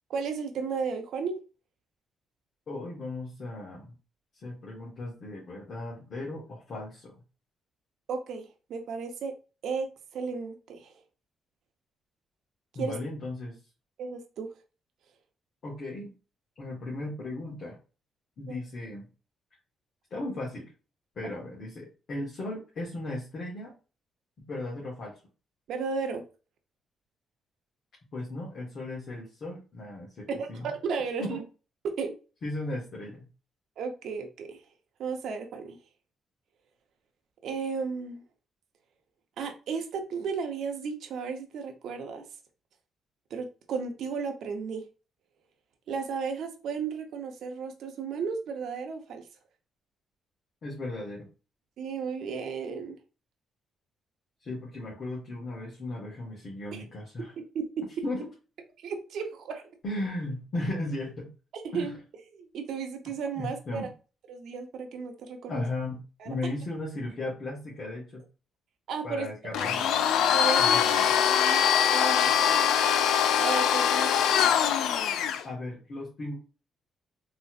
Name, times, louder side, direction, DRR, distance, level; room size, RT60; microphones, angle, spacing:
voice 1, 0.1-1.4 8.1-9.3 9.6-10.9 12.7-12.9 14.0-14.5 18.5-18.6 25.7-26.2 30.3-31.4 32.0-32.1 33.8-34.6 35.0-35.8 37.4-38.2 39.4-42.2 43.3-44.8 45.9-49.2 51.8-52.9 56.7-56.8 57.5-57.8 58.8-59.6 61.5-61.9 62.3-63.9 64.3-65.7 66.2-66.3 68.9-69.3 69.5-69.9 70.3-71.6 71.9-72.7 73.4-74.5, right 5 dB, 75° right, 4 dB, 0.8 m, -34 dB
voice 2, 2.7-3.9 4.4-7.2 12.7-13.6 15.6-16.1 16.6-17.8 18.4-19.1 20.1-20.7 21.1-23.7 24.5-25.1 28.1-30.7 31.2-31.4 32.4-33.3 50.6-51.3 54.4-57.3 58.0-58.3 59.8-61.3 61.7-61.9 63.4-63.9 65.5-68.2 69.0-69.8 70.6-71.1 75.4-76.4, left 2 dB, 50° left, -4 dB, 1.5 m, -36 dB
Domestic sounds home sounds, 69.5-75.4, left 9 dB, 85° left, 0.3 m, -23 dB
4.0 x 3.0 x 2.5 m, 0.34 s
cardioid pair, 90°, 0 cm